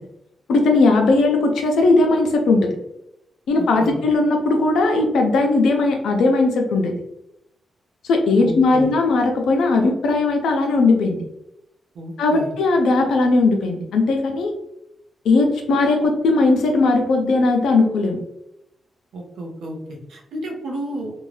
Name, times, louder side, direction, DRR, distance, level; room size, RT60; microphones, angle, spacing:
voice 1, 0.5-2.7 3.5-6.9 8.1-11.2 12.2-14.5 15.2-18.2, left 3 dB, 85° left, 3 dB, 0.5 m, -18 dB
voice 2, 3.6-4.0 8.4-8.9 12.0-12.5 19.1-21.2, right 1 dB, 85° right, 1 dB, 0.7 m, -32 dB
2.6 x 2.2 x 3.2 m, 0.83 s
cardioid pair, 70°, 0 cm